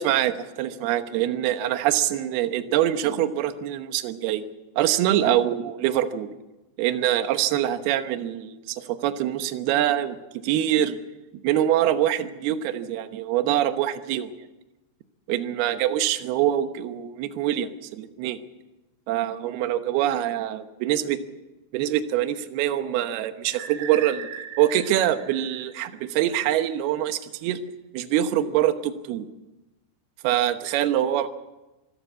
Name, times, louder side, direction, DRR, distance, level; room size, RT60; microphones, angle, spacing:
voice 1, 0.0-4.4 4.8-6.3 6.8-11.0 11.4-14.3 15.3-18.4 19.1-21.2 21.7-24.3 24.6-27.6 27.9-29.3 30.2-31.3, right 12 dB, 75° right, 9 dB, 2.5 m, -24 dB
sound 1, 23.5-26.4, right 8 dB, 90° right, 4.5 m, -39 dB
24.5 x 14.5 x 8.3 m, 1.0 s
omnidirectional pair, 5.8 m